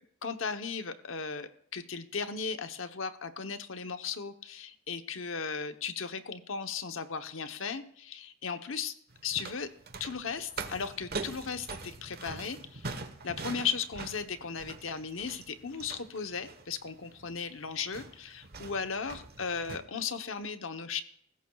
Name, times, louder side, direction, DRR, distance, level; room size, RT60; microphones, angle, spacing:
voice 1, 0.2-8.9 9.2-9.7 10.0-21.0, left 6 dB, 85° left, 8 dB, 1.0 m, -36 dB
sound 1, 9.1-19.8, right 3 dB, 55° right, 1.2 m, -43 dB
22.5 x 14.5 x 2.4 m, 0.65 s
head